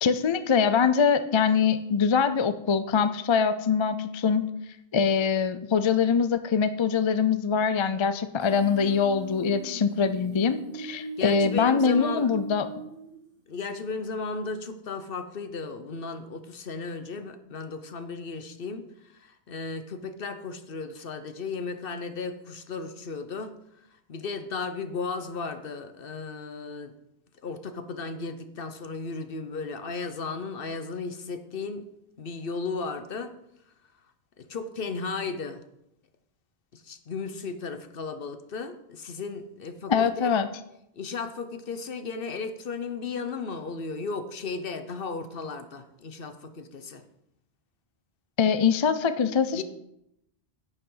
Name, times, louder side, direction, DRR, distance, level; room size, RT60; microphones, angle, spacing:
voice 1, 0.0-4.5 4.9-12.7 39.9-40.5 48.4-49.6, left 6 dB, 40° left, 11 dB, 0.5 m, -23 dB
Human voice, 8.4-13.4, right 4 dB, 60° right, 2.4 m, -39 dB
voice 2, 11.2-12.3 13.5-26.9 27.4-31.9 32.2-33.4 34.4-35.6 36.7-40.3 41.0-47.0 49.5-49.6, left 4 dB, 65° left, 9 dB, 1.1 m, -35 dB
10.5 x 9.6 x 3.9 m, 0.81 s
omnidirectional pair, 1.0 m